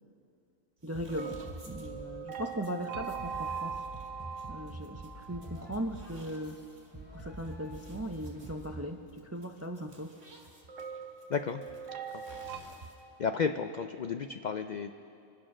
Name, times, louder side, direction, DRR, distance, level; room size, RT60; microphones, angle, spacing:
voice 1, 0.8-1.4 1.7-3.8 4.5-6.6 7.1-10.1, equal, 25° right, 5 dB, 0.3 m, -38 dB
sound 1, 0.8-13.2, right 2 dB, 55° right, 2.4 m, -56 dB
sound 2, 0.9-2.2 2.9-8.9, right 1 dB, 10° right, 2.5 m, -46 dB
sound 3, 1.1-6.0 10.7-12.6, right 6 dB, 75° right, 1.4 m, -41 dB
voice 2, 11.3-11.6 12.1-12.2 13.2-14.9, left 6 dB, 70° left, 8 dB, 0.4 m, -32 dB
24.5 x 8.8 x 6.0 m, 2.6 s
omnidirectional pair, 1.3 m